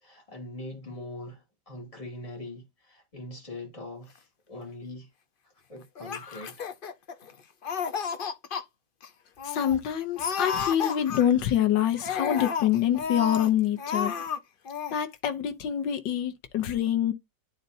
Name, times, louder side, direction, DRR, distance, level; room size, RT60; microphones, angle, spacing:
voice 1, 0.0-5.1 5.7-6.7, left 1 dB, 20° left, 2.6 m, -42 dB
Laughter, 6.0-7.3 7.6-8.6 9.0-9.1 9.4-9.8 10.2-11.5 12.0-13.5 13.8-14.4 14.6-14.9, left 6 dB, 50° left, 0.7 m, -32 dB
voice 2, 9.4-14.2 14.9-17.1, left 10 dB, 85° left, 1.6 m, -26 dB
11.5 x 4.1 x 2.6 m
omnidirectional pair, 1.9 m